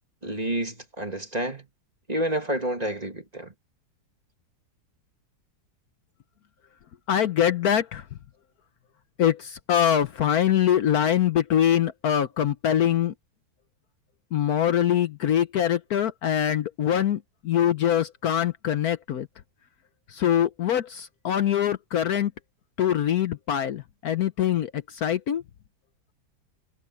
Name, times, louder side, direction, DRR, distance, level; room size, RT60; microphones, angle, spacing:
voice 1, 0.2-1.7 2.1-3.5, right 1 dB, 25° right, 2.5 m, -29 dB
voice 2, 7.1-8.1 9.2-13.1 14.3-19.3 20.1-22.3 22.8-25.4, left 10 dB, 65° left, 1.2 m, -23 dB
omnidirectional pair, 1.8 m